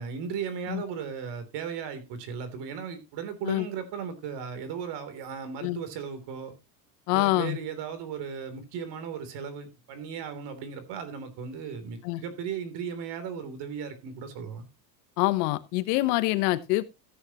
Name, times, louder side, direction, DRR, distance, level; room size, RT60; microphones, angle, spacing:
voice 1, 0.0-6.5 7.1-14.7, right 7 dB, 55° right, 3.3 m, -36 dB
voice 2, 7.1-7.6 12.0-12.2 15.2-16.8, left 19 dB, 70° left, 1.1 m, -25 dB
14.5 x 9.3 x 2.9 m
supercardioid pair, 110°, 48 cm